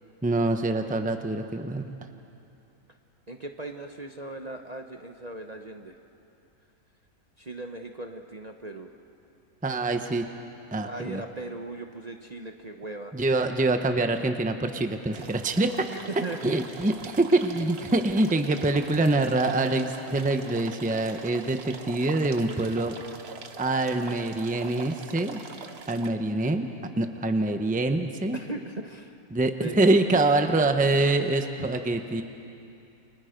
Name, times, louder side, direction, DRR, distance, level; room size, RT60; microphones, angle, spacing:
voice 1, 0.2-1.9 9.6-10.2 10.7-11.2 13.1-15.8 16.4-22.9 23.6-25.4 25.9-26.7 27.0-28.4 29.3-32.2, right 2 dB, 5° right, 6 dB, 0.8 m, -25 dB
voice 2, 3.3-6.0 7.4-8.9 10.8-13.1 15.9-16.9 28.3-29.2 29.6-29.8, right 2 dB, 35° right, 4 dB, 0.8 m, -38 dB
sound 1, 15.1-26.1, right 5 dB, 50° right, 1.2 m, -43 dB
29.0 x 24.5 x 5.2 m, 2.7 s
omnidirectional pair, 1.5 m